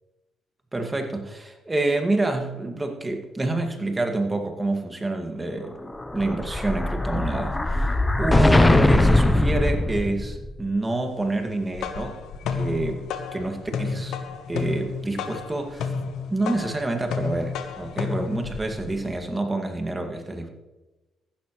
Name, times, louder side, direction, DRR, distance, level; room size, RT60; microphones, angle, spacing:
voice 1, 0.7-5.8 6.1-12.2 12.6-13.0 13.3-14.2 14.5-15.9 16.3-20.5, right 2 dB, 20° right, 4 dB, 2.0 m, -27 dB
Explosion, 5.9-10.5, left 1 dB, 15° left, 0.8 m, -20 dB
sound 1, 11.5-19.2, left 5 dB, 80° left, 1.1 m, -31 dB
15.0 x 12.0 x 3.2 m, 1.1 s
cardioid pair, 90°, 0 cm